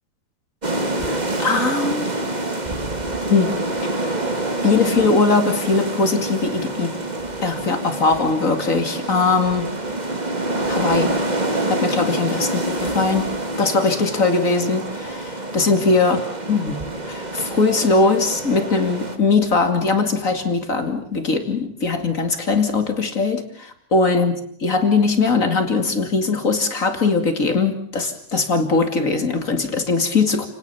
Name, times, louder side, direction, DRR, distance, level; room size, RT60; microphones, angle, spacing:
sound 1, 0.6-19.2, right 2 dB, 50° right, 0.5 m, -26 dB
voice 1, 1.1-2.1 3.3-3.5 4.6-6.9 7.4-9.7 10.7-11.1 11.7-13.2 13.6-16.8 17.0-30.4, left 4 dB, 25° left, 7 dB, 1.9 m, -20 dB
29.5 x 19.0 x 7.1 m, 0.63 s
omnidirectional pair, 4.7 m